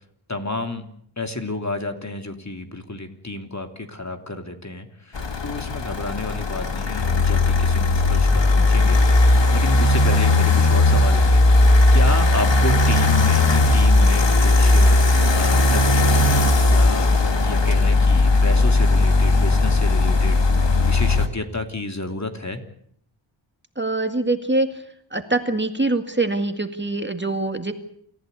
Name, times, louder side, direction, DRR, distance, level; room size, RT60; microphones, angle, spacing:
voice 1, 0.3-0.8 1.2-9.0 9.5-17.1 17.4-22.6, left 2 dB, 35° left, 5 dB, 3.1 m, -31 dB
sound 1, 5.1-21.3, left 2 dB, 65° left, 2.3 m, -17 dB
voice 2, 23.8-24.8 25.1-27.7, right 2 dB, 25° right, 6 dB, 2.1 m, -24 dB
28.5 x 15.0 x 8.3 m, 0.68 s
wide cardioid pair, 60°, 47 cm